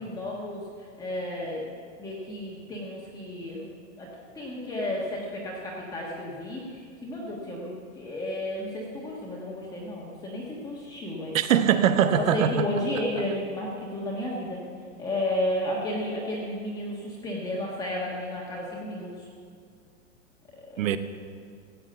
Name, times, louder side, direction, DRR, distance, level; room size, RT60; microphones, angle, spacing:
voice 1, 0.0-1.7 2.0-3.7 4.0-11.4 12.0-14.6 15.0-19.3 20.5-20.9, left 1 dB, 10° left, -4 dB, 1.3 m, -32 dB
voice 2, 11.3-12.6 20.8-21.0, right 9 dB, 80° right, 11 dB, 1.1 m, -22 dB
15.5 x 8.5 x 7.8 m, 2.2 s
supercardioid pair, 165°, 39 cm